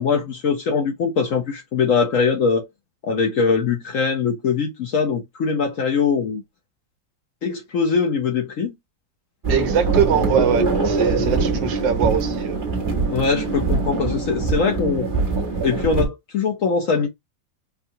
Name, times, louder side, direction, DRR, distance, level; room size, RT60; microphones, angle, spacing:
voice 1, 0.0-2.7 3.0-6.4 7.4-8.7 11.2-11.3 13.1-15.1 15.6-17.1, left 5 dB, 60° left, 0.9 m, -22 dB
sound 1, 9.4-16.1, right 3 dB, 35° right, 1.1 m, -23 dB
voice 2, 9.5-12.6, right 8 dB, 80° right, 1.4 m, -22 dB
4.6 x 2.3 x 2.7 m
omnidirectional pair, 2.0 m